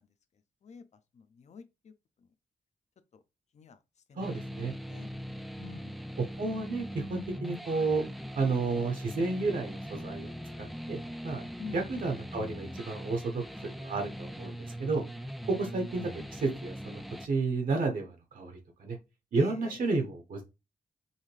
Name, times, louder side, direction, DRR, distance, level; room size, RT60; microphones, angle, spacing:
voice 1, 1.1-1.9 3.5-3.8 4.1-4.2 4.9-5.1 5.6-5.9 11.6-11.8 19.3-19.8, left 6 dB, 50° left, 0.6 m, -47 dB
sound 1, 4.2-17.3, equal, ahead, 0.3 m, -41 dB
voice 2, 4.2-4.7 6.4-8.1 8.3-10.3 10.6-11.0 11.2-11.4 11.7-13.4 13.7-15.0 15.5-19.0 19.3-20.4, right 3 dB, 65° right, 1.0 m, -31 dB
5.5 x 2.7 x 3.2 m
wide cardioid pair, 150°, 15 cm